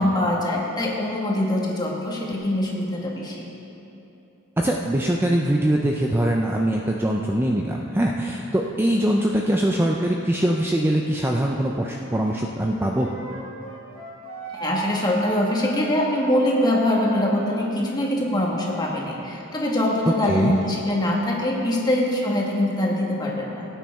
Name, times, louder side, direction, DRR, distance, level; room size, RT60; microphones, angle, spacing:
voice 1, 0.0-3.5 14.6-23.7, left 1 dB, 20° left, -3 dB, 1.7 m, -23 dB
voice 2, 4.6-13.1 20.3-20.6, right 1 dB, 10° right, 0 dB, 0.5 m, -22 dB
Wind instrument woodwind instrument, 12.6-17.7, right 3 dB, 65° right, 2.9 m, -36 dB
17.5 x 9.1 x 3.6 m, 2.9 s
head